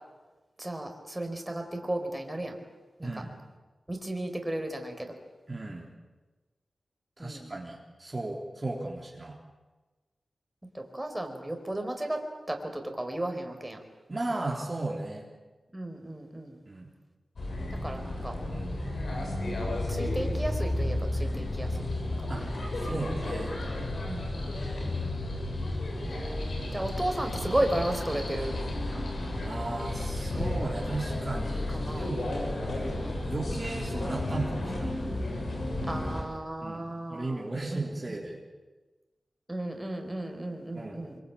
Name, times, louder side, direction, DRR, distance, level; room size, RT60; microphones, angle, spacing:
voice 1, 0.6-2.6 3.0-3.1 3.9-5.1 7.2-7.5 10.7-13.8 15.7-16.6 17.8-18.4 19.9-21.9 22.2-22.4 24.0-24.6 26.0-28.6 31.7-32.2 35.9-38.2 39.5-41.2, right 1 dB, 15° right, 4 dB, 4.6 m, -34 dB
voice 2, 3.0-3.3 5.5-5.9 7.2-9.4 14.1-15.3 16.7-16.9 17.9-18.0 18.5-18.7 22.3-22.5 22.7-23.6 24.8-25.2 29.4-32.3 32.7-35.0 36.6-38.4 40.7-41.1, right 2 dB, 35° right, -2 dB, 3.7 m, -36 dB
sound 1, 17.4-36.2, left 1 dB, 75° left, 7.9 m, -32 dB
25.0 x 23.5 x 8.8 m, 1.2 s
wide cardioid pair, 65°, 0 cm